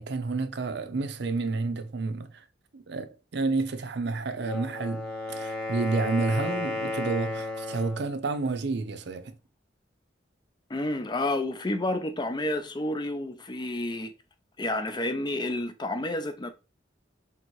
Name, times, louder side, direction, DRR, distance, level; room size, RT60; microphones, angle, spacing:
voice 1, 0.0-2.4 2.7-9.3, right 3 dB, 65° right, 0.6 m, -30 dB
Wind instrument woodwind instrument, 4.3-8.1, left 2 dB, 5° left, 1.0 m, -33 dB
voice 2, 10.7-14.1 14.6-16.5, left 1 dB, 25° left, 0.5 m, -30 dB
3.5 x 2.9 x 4.5 m
head